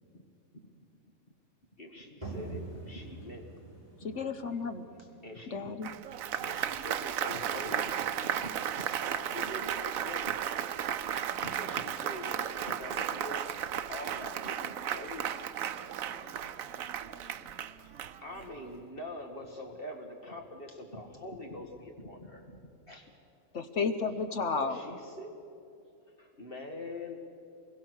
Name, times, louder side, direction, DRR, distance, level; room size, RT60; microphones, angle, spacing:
voice 1, 1.8-3.6 4.5-4.6 5.2-5.7 6.4-8.6 9.0-10.4 11.1-13.4 13.7-15.4 17.8-17.9 18.2-23.1 24.5-25.3 26.2-27.2, left 1 dB, 45° left, 2 dB, 2.1 m, -44 dB
sound 1, 2.2-7.7, right 3 dB, 30° right, 7.2 m, -46 dB
voice 2, 4.0-4.8 5.5-5.9 23.5-24.8, left 4 dB, 60° left, 8 dB, 1.3 m, -32 dB
Applause, 5.8-18.6, right 9 dB, 85° right, 1.1 m, -35 dB
voice 3, 15.7-17.6 25.6-26.1, right 1 dB, 55° right, -1 dB, 8.3 m, -57 dB
26.5 x 22.0 x 6.4 m, 2.6 s
omnidirectional pair, 1.4 m